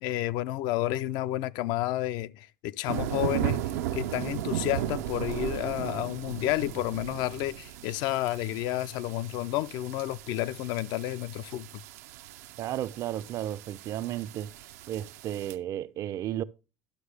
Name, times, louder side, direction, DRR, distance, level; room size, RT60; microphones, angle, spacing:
voice 1, 0.0-3.6 3.9-11.8, left 15 dB, 60° left, 0.4 m, -31 dB
sound 1, 2.9-15.5, right 12 dB, 85° right, 0.6 m, -36 dB
voice 2, 12.6-14.5 14.9-16.4, right 12 dB, 40° right, 0.4 m, -33 dB
11.5 x 6.2 x 3.3 m
supercardioid pair, 115°, 9 cm